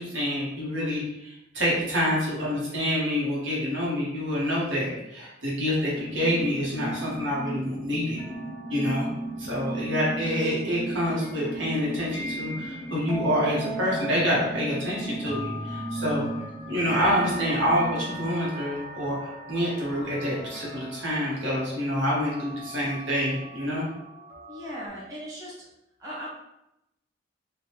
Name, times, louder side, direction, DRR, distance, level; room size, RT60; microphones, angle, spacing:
voice 1, 0.0-8.2 8.7-9.1 9.4-16.3 16.7-23.8, equal, 75° right, -6 dB, 1.2 m, -27 dB
sound 1, 6.0-18.3, right 2 dB, 10° left, 0.3 m, -36 dB
sound 2, 8.2-24.9, right 1 dB, 40° right, 0.9 m, -40 dB
voice 2, 24.5-25.6 26.0-26.3, equal, 20° right, -9 dB, 1.2 m, -38 dB
3.6 x 2.2 x 3.0 m, 0.85 s
head